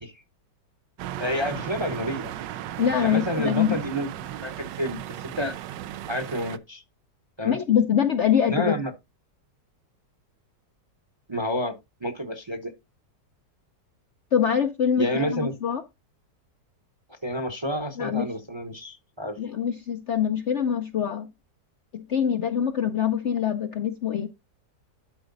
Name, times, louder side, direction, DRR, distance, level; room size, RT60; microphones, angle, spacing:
sound 1, 1.0-6.6, right 12 dB, 80° right, 1.3 m, -36 dB
voice 1, 1.2-2.3 3.0-4.1 4.4-5.5 6.1-6.8 7.4-7.6 8.5-8.9 11.3-11.7 12.0-12.7 15.0-15.5 17.2-19.4, equal, 20° right, 0.8 m, -29 dB
voice 2, 2.8-3.8 7.4-8.7 14.3-15.8 18.0-18.3 19.4-21.3 21.9-24.3, left 8 dB, 55° left, 0.8 m, -24 dB
12.0 x 4.9 x 4.0 m
omnidirectional pair, 1.9 m